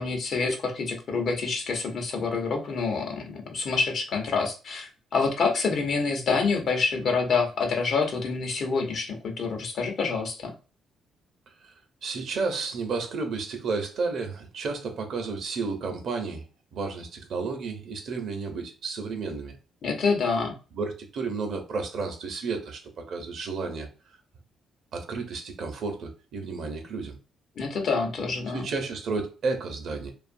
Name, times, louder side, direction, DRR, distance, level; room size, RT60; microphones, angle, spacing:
voice 1, 0.0-10.5 19.8-20.5 27.6-28.7, left 4 dB, 60° left, 3 dB, 0.8 m, -27 dB
voice 2, 12.0-16.4 16.7-19.5 20.7-23.9 24.9-27.2 28.5-30.1, right 4 dB, 65° right, 5 dB, 0.6 m, -32 dB
2.6 x 2.4 x 2.5 m, 0.34 s
cardioid pair, 90°, 0 cm